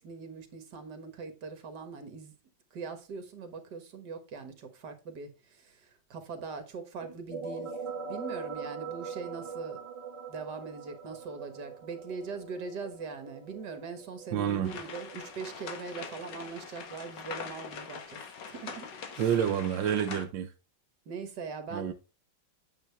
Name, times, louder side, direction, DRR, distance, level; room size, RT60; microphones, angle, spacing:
voice 1, 0.0-2.3 2.7-7.8 8.1-9.8 10.3-18.2 18.5-19.2 21.1-21.9, right 5 dB, 65° right, 2.0 m, -41 dB
sound 1, 7.0-16.4, right 5 dB, 15° right, 1.8 m, -42 dB
voice 2, 14.3-14.7 19.2-20.5 21.7-21.9, right 9 dB, 85° right, 1.4 m, -28 dB
sound 2, 14.6-20.2, left 6 dB, 70° left, 2.0 m, -43 dB
8.9 x 7.2 x 3.4 m
omnidirectional pair, 2.0 m